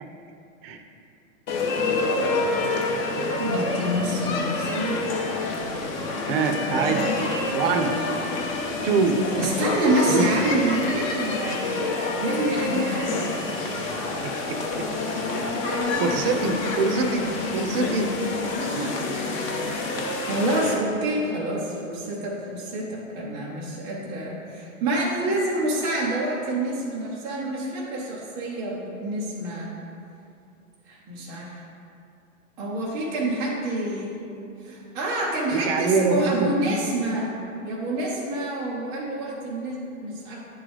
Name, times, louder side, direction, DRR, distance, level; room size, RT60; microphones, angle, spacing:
sound 1, 1.5-20.7, left 2 dB, 30° left, 0.7 m, -27 dB
voice 1, 3.4-5.0 9.4-13.3 18.7-19.5 20.3-29.7 30.9-31.6 32.6-34.2 34.6-40.4, right 1 dB, 10° right, -6 dB, 0.3 m, -27 dB
voice 2, 6.3-7.0 7.5-7.9 8.8-9.2 10.1-10.2 14.2-14.9 15.3-18.1 35.5-36.7, right 4 dB, 45° right, 5 dB, 0.6 m, -25 dB
9.6 x 3.8 x 3.3 m, 2.7 s
hypercardioid pair, 140°, 42 cm